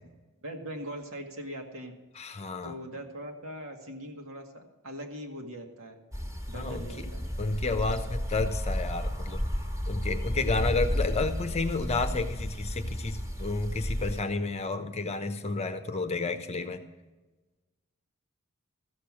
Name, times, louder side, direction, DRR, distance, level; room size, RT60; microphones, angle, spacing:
voice 1, 0.4-1.9 2.6-6.0 6.5-7.3, equal, 65° right, 2 dB, 2.0 m, -41 dB
voice 2, 2.2-2.8 6.5-6.9 7.4-9.4 9.9-16.8, left 3 dB, 30° left, 8 dB, 0.8 m, -31 dB
sound 1, 6.1-14.2, equal, 15° right, 1.8 m, -32 dB
14.5 x 6.8 x 7.5 m, 1.2 s
head